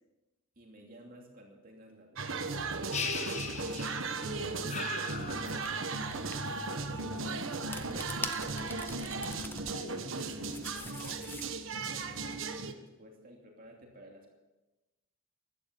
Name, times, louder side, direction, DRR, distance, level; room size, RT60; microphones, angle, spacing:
voice 1, 0.6-3.2 7.0-7.1 11.7-14.3, right 1 dB, 40° right, 0 dB, 2.7 m, -53 dB
sound 1, 2.2-12.7, right 3 dB, 65° right, 1.3 m, -36 dB
sound 2, 2.9-4.3 4.7-6.0, left 6 dB, 30° left, 1.2 m, -39 dB
voice 2, 4.2-6.6 6.9-7.4 9.7-11.2, left 1 dB, 75° left, 5 dB, 2.2 m, -48 dB
sound 3, 4.8-4.9 5.6-5.7 6.1-6.4 7.5-9.7 10.2-11.7, left 3 dB, 10° left, 0.6 m, -43 dB
16.0 x 12.0 x 7.0 m, 1.0 s
head